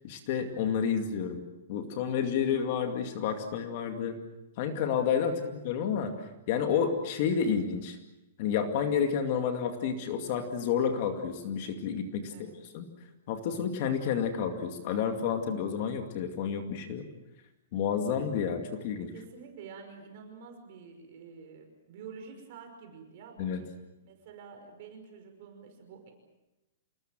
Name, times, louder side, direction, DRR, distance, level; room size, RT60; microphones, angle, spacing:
voice 1, 0.0-1.4 1.7-4.2 4.6-8.0 8.4-12.9 13.3-17.1 17.7-19.1 23.4-23.6, left 7 dB, 40° left, 5 dB, 2.3 m, -30 dB
voice 2, 12.3-12.6 18.7-23.6 24.1-26.1, right 6 dB, 40° right, 4 dB, 5.5 m, -48 dB
28.5 x 20.0 x 7.7 m, 0.99 s
hypercardioid pair, 170°, 0 cm